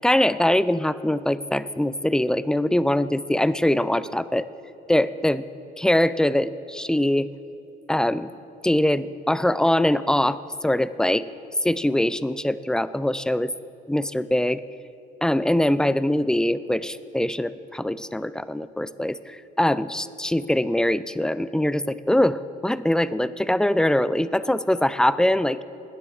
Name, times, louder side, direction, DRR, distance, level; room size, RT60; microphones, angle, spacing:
voice 1, 0.0-4.5 4.9-5.4 5.8-7.3 7.9-8.3 8.6-10.4 10.6-11.3 11.6-13.5 13.9-14.6 15.2-25.6, left 1 dB, 5° left, 15 dB, 0.4 m, -22 dB
18.0 x 10.0 x 6.5 m, 2.8 s
cardioid pair, 110°, 17 cm